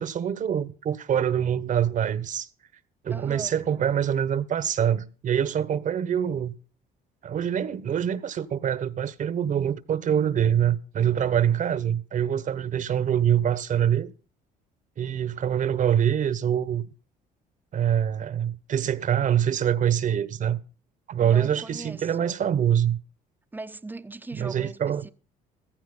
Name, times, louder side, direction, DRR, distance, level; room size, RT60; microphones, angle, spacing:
voice 1, 0.0-2.5 3.0-6.5 7.2-14.1 15.0-16.9 17.7-20.6 21.1-23.0 24.3-25.0, right 9 dB, 50° right, 1.3 m, -25 dB
voice 2, 3.1-3.6 21.2-22.4 23.5-25.1, right 2 dB, 10° right, 0.9 m, -40 dB
15.0 x 14.5 x 3.9 m
cardioid pair, 110°, 17 cm